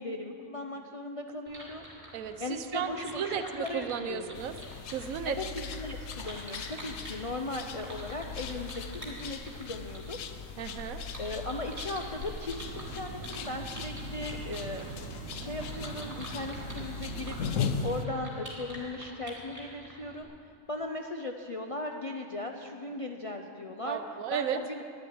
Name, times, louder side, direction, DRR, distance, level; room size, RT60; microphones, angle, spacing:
voice 1, 0.0-1.9 2.4-4.4 5.2-10.2 11.2-14.9 15.3-20.3 20.7-24.0 24.3-24.8, left 2 dB, 45° left, 3 dB, 0.4 m, -38 dB
sound 1, 1.5-20.2, equal, 25° right, 2.7 m, -47 dB
voice 2, 2.1-4.5 4.9-5.4 10.6-11.0 23.8-24.6, right 9 dB, 85° right, 10 dB, 1.1 m, -34 dB
sound 2, 4.3-18.1, left 6 dB, 75° left, 1.0 m, -39 dB
sound 3, 12.6-18.1, right 7 dB, 65° right, 0.7 m, -43 dB
10.5 x 7.7 x 9.4 m, 2.4 s
omnidirectional pair, 1.4 m